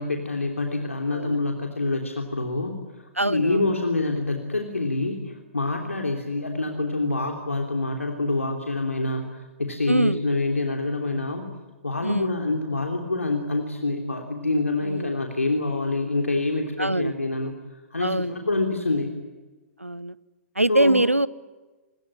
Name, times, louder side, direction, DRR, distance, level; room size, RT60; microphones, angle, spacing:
voice 1, 0.0-2.8 3.2-11.5 11.8-17.5 17.9-19.1 20.7-21.0, left 2 dB, 80° left, 3 dB, 3.3 m, -26 dB
voice 2, 3.2-3.7 5.0-5.3 9.9-10.2 12.0-12.4 14.8-15.1 16.8-17.1 18.0-18.5 19.8-20.2 20.5-21.3, right 1 dB, 85° right, 21 dB, 0.9 m, -24 dB
26.0 x 22.5 x 9.9 m, 1.2 s
figure-of-eight pair, 115°, 7 cm